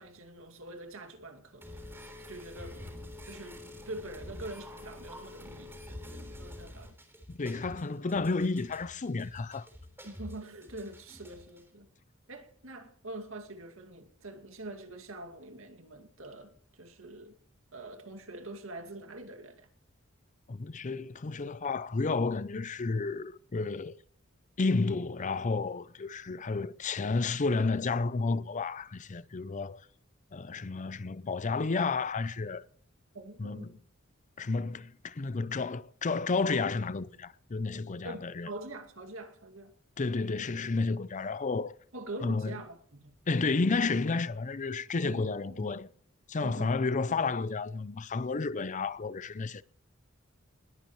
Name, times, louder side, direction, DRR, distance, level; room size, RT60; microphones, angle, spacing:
voice 1, 0.0-1.9 2.3-3.6 3.9-6.9 10.0-11.9 12.3-17.4 17.7-19.7 33.1-33.8 38.0-39.7 41.9-43.1 45.0-45.7 46.4-46.8, right 2 dB, 75° right, 2.4 m, -45 dB
sound 1, 1.6-11.6, left 1 dB, 10° right, 3.6 m, -47 dB
voice 2, 7.3-9.7 20.5-24.0 24.6-29.9 30.3-32.6 33.4-33.8 34.4-38.5 40.0-41.8 42.2-42.6 43.3-45.9 46.3-49.6, left 3 dB, 35° left, 0.6 m, -31 dB
20.5 x 14.5 x 3.2 m
head